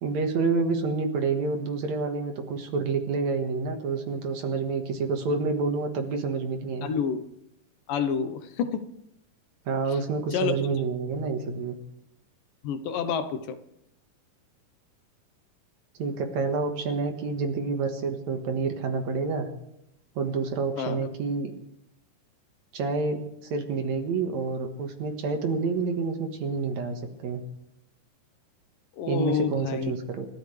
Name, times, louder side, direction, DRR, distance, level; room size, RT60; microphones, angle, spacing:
voice 1, 0.0-7.0 9.7-11.7 16.0-19.5 20.2-21.5 22.7-27.4 29.1-30.3, right 4 dB, 60° right, 5 dB, 2.6 m, -28 dB
voice 2, 6.8-7.3 7.9-8.9 10.3-10.8 12.6-13.6 20.8-21.0 29.0-29.9, left 6 dB, 85° left, 9 dB, 2.7 m, -29 dB
29.0 x 12.5 x 3.3 m, 0.80 s
omnidirectional pair, 3.8 m